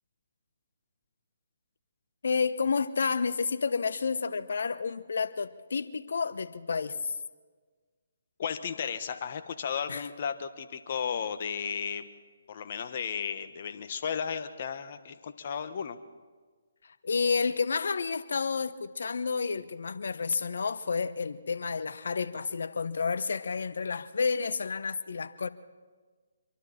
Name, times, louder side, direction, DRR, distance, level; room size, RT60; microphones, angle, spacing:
voice 1, 2.2-7.2 9.9-10.1 16.8-25.5, left 5 dB, 65° left, 1.0 m, -30 dB
voice 2, 8.4-12.1 12.5-16.0, left 7 dB, 45° left, 1.4 m, -34 dB
25.5 x 23.5 x 4.3 m
figure-of-eight pair, 145°, 0 cm